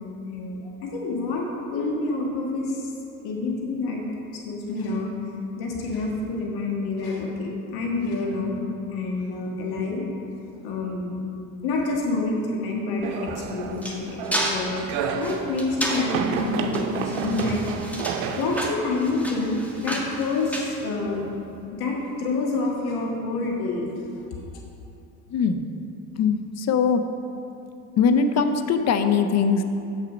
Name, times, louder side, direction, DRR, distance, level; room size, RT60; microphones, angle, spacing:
voice 1, 0.2-1.5 1.7-2.8 3.2-4.0 4.4-5.2 5.6-8.6 8.9-10.0 10.6-11.2 11.6-14.2 14.5-14.9 15.2-17.6 18.4-21.2 21.7-23.9, left 3 dB, 60° left, -1 dB, 1.7 m, -27 dB
sound 1, 13.0-20.1, right 6 dB, 70° right, 0.7 m, -31 dB
sound 2, 13.2-21.5, equal, 5° left, 1.4 m, -32 dB
voice 2, 25.3-25.6 26.2-27.0 28.0-29.6, left 6 dB, 40° left, 8 dB, 0.7 m, -21 dB
6.5 x 6.5 x 5.1 m, 2.7 s
hypercardioid pair, 70°, 43 cm